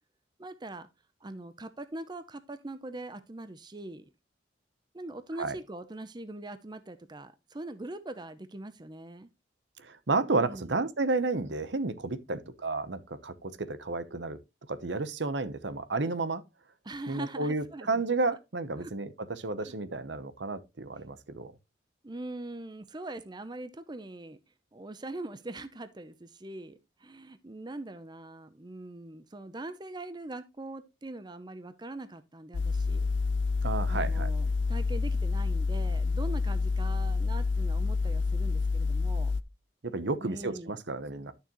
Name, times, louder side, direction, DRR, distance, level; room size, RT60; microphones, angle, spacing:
voice 1, 0.4-0.9 1.2-4.1 4.9-9.3 10.3-10.7 16.8-18.0 18.8-18.9 19.6-19.7 22.0-24.4 24.7-33.1 33.9-39.3 40.2-40.8, right 2 dB, 25° right, 0.6 m, -42 dB
voice 2, 9.8-14.4 14.7-16.4 17.1-21.5 33.6-34.3 39.8-41.3, right 3 dB, 70° right, 0.9 m, -32 dB
sound 1, 32.5-39.4, left 4 dB, 85° left, 0.6 m, -28 dB
11.5 x 6.6 x 3.0 m
head